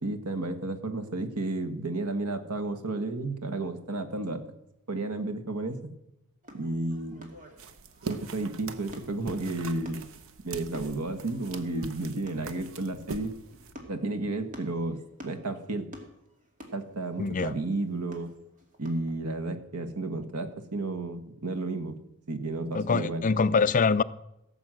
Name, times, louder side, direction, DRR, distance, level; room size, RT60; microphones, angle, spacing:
voice 1, 0.0-4.5 4.9-5.9 6.5-7.3 8.0-10.0 10.4-13.3 13.9-15.9 16.7-18.3 18.8-22.0 22.3-23.2, right 2 dB, 90° right, 1.5 m, -32 dB
sound 1, 6.4-19.1, equal, 35° right, 2.2 m, -50 dB
sound 2, 7.6-13.7, right 4 dB, 65° right, 1.0 m, -42 dB
voice 2, 17.2-17.5 22.7-24.0, left 5 dB, 35° left, 0.4 m, -24 dB
16.5 x 7.3 x 7.7 m
head